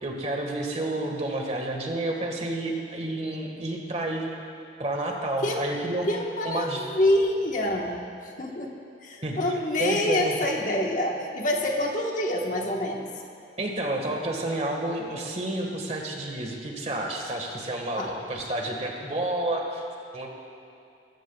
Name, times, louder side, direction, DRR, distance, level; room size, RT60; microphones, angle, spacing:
voice 1, 0.0-4.3 4.8-6.1 6.4-6.8 9.2-10.3 13.6-19.8 20.1-20.3, right 1 dB, 40° right, 1 dB, 1.6 m, -30 dB
voice 2, 6.1-8.7 9.0-13.1 18.0-18.2, left 1 dB, 45° left, 0 dB, 1.3 m, -26 dB
20.5 x 14.5 x 2.3 m, 2.6 s
head